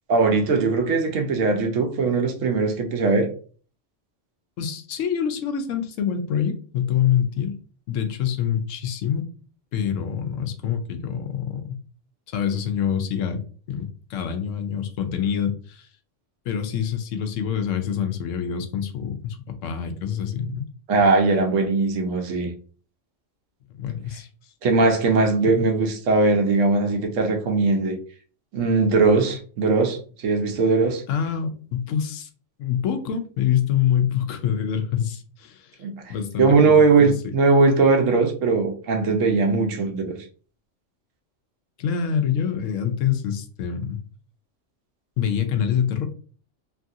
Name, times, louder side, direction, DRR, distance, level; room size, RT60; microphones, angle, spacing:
voice 1, 0.1-3.3 20.9-22.5 24.6-28.0 28.5-31.0 35.8-40.2, right 4 dB, 90° right, 1.1 m, -20 dB
voice 2, 4.6-7.5 7.9-9.2 9.7-11.8 12.3-13.4 13.7-15.9 16.5-20.7 23.8-24.3 25.4-25.7 31.1-32.3 32.6-35.7 36.1-36.6 37.0-37.3 41.8-44.0 45.2-46.1, left 8 dB, 85° left, 0.9 m, -26 dB
3.0 x 2.4 x 2.7 m
omnidirectional pair, 1.3 m